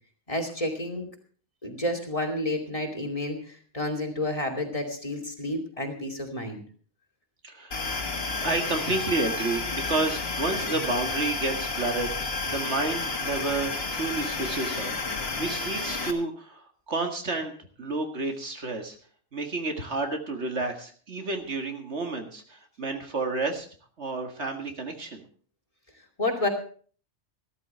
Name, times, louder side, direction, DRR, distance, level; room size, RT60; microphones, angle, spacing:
voice 1, 0.3-1.1 1.6-6.6 26.2-26.5, left 1 dB, 30° left, 4 dB, 2.7 m, -30 dB
voice 2, 7.4-19.0 19.3-23.7 24.0-25.2, right 3 dB, 70° right, 4 dB, 2.2 m, -31 dB
sound 1, 7.7-16.1, left 3 dB, 55° left, 1.8 m, -31 dB
14.5 x 13.5 x 4.4 m, 0.44 s
omnidirectional pair, 1.2 m